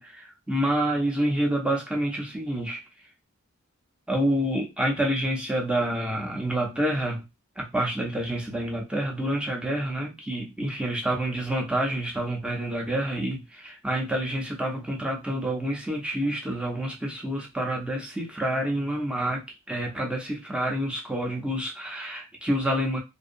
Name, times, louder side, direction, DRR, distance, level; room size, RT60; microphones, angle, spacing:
voice 1, 0.0-2.8 4.1-7.2 7.6-23.0, right 1 dB, 5° right, 0 dB, 0.6 m, -28 dB
2.6 x 2.2 x 2.5 m, 0.24 s
head